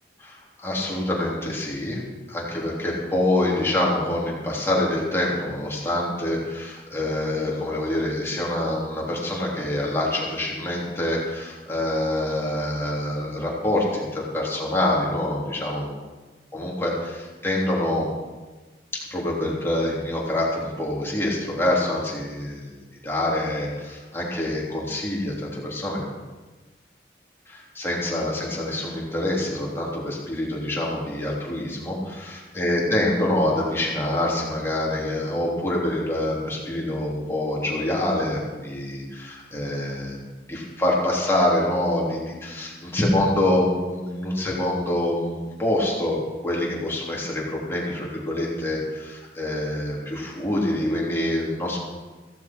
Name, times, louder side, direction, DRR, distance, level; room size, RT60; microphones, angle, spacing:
voice 1, 0.2-2.0 2.3-15.9 16.5-18.1 19.1-22.7 23.0-26.1 27.5-40.2 40.5-51.8, left 1 dB, 15° left, -4 dB, 3.3 m, -26 dB
15.5 x 15.0 x 4.5 m, 1.3 s
head